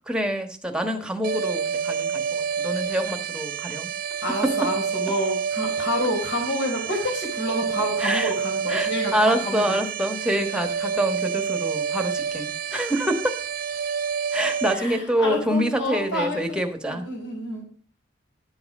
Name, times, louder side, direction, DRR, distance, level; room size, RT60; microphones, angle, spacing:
voice 1, 0.1-3.9 4.4-4.7 8.0-8.3 8.7-13.3 14.3-17.1, right 1 dB, 5° right, 5 dB, 1.3 m, -26 dB
sound 1, 1.2-14.8, right 6 dB, 50° right, 0.8 m, -28 dB
voice 2, 4.2-9.7 14.7-16.6 16.9-17.6, equal, 70° left, 0 dB, 4.5 m, -29 dB
12.0 x 7.9 x 5.3 m, 0.42 s
head